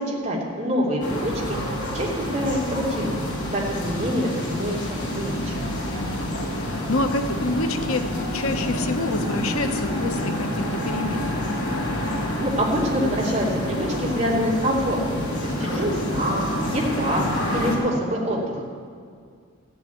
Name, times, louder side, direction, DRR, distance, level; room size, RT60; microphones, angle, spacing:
voice 1, 0.0-1.6 1.9-3.2 3.5-5.5 12.4-17.2 17.5-18.6, equal, 35° right, -4 dB, 3.0 m, -26 dB
sound 1, 1.0-17.8, left 1 dB, 50° left, 3.3 m, -28 dB
voice 2, 5.9-11.3, left 2 dB, 80° left, 7 dB, 1.0 m, -28 dB
14.0 x 7.4 x 9.5 m, 2.1 s
head